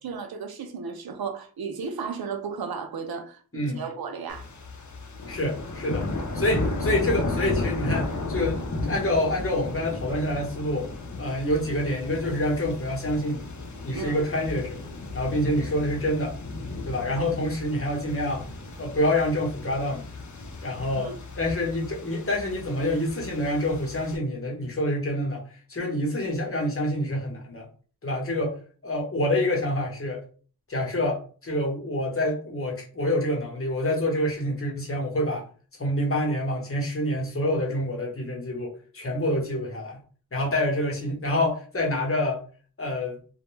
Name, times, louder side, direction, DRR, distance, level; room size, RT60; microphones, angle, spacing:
voice 1, 0.0-4.4 13.9-14.2 20.9-21.1, right 5 dB, 85° right, 0.5 m, -34 dB
sound 1, 4.3-24.2, left 2 dB, 55° left, 0.6 m, -34 dB
voice 2, 5.3-6.0 6.3-10.9 11.2-13.5 13.8-14.8 15.1-16.4 16.8-18.4 18.8-20.1 20.6-27.7 28.0-28.5 28.8-30.2 30.7-35.5 35.7-40.0 40.3-42.4 42.8-43.2, left 1 dB, 40° left, 0.9 m, -27 dB
2.2 x 2.1 x 3.1 m
wide cardioid pair, 70°, 36 cm